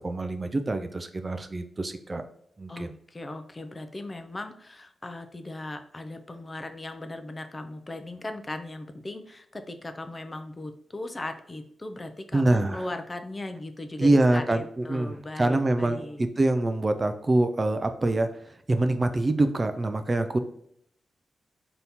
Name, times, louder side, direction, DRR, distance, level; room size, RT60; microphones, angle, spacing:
voice 1, 0.0-2.2 2.6-2.9 12.3-12.9 14.0-20.4, right 2 dB, 30° right, 8 dB, 0.4 m, -25 dB
voice 2, 2.7-16.2, left 2 dB, 25° left, 7 dB, 0.5 m, -38 dB
4.1 x 2.9 x 3.4 m, 0.68 s
cardioid pair, 75°, 0 cm